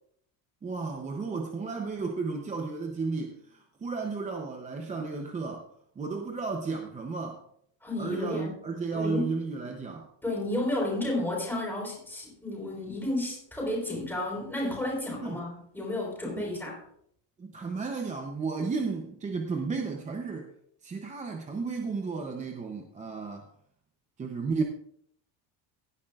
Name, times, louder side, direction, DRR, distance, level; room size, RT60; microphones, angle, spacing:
voice 1, 0.6-5.7 6.0-7.4 8.0-10.1 15.2-15.4 16.4-16.5 17.4-20.5 20.8-23.5 24.2-24.6, right 4 dB, 15° right, 3 dB, 0.6 m, -33 dB
voice 2, 7.8-8.5 8.9-9.4 10.2-16.8, left 1 dB, 5° left, -2 dB, 4.0 m, -32 dB
17.0 x 9.8 x 2.4 m, 0.68 s
cardioid pair, 170°, 48 cm